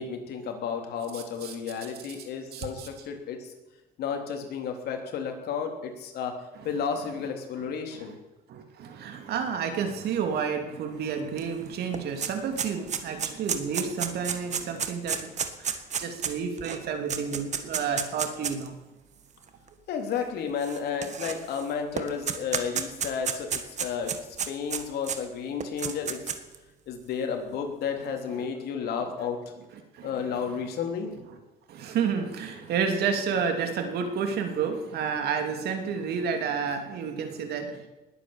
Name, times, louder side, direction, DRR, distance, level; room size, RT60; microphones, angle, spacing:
voice 1, 0.0-3.5 4.0-6.3 6.6-8.2 19.9-24.1 24.5-26.2 26.9-29.4 30.0-31.1, left 6 dB, 70° left, 4 dB, 3.4 m, -32 dB
voice 2, 1.1-1.5 1.8-1.9 2.5-2.9 6.5-6.7 7.9-8.1 8.5-15.3 15.6-18.7 29.9-30.7 31.3-31.4 31.7-37.8, right 6 dB, 70° right, 5 dB, 3.1 m, -31 dB
sound 1, 11.4-11.5 11.7-18.7 19.4-19.5 20.6-21.6 22.0-25.2 25.6-26.6, right 7 dB, 45° right, 1.7 m, -31 dB
20.0 x 9.1 x 7.2 m, 1.1 s
cardioid pair, 110°, 17 cm